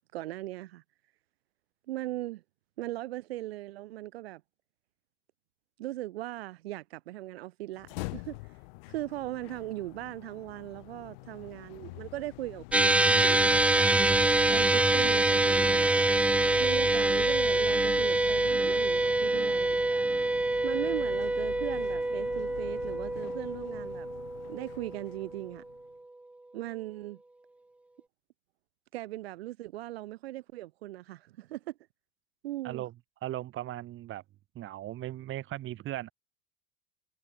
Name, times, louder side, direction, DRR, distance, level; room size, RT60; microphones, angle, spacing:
voice 1, 0.1-0.8 1.9-2.4 2.8-4.4 5.8-8.5 8.9-14.0 14.5-16.0 16.6-20.0 20.6-24.1 24.5-25.6 26.5-27.2 28.9-31.7 32.4-32.8, right 16 dB, 85° right, 0.8 m, -39 dB
sound 1, 7.7-25.9, left 26 dB, 70° left, 3.2 m, -45 dB
sound 2, 12.7-25.2, right 2 dB, 5° right, 0.4 m, -25 dB
voice 2, 33.2-34.2 34.5-36.1, right 14 dB, 40° right, 2.4 m, -37 dB
supercardioid pair, 110°, 30 cm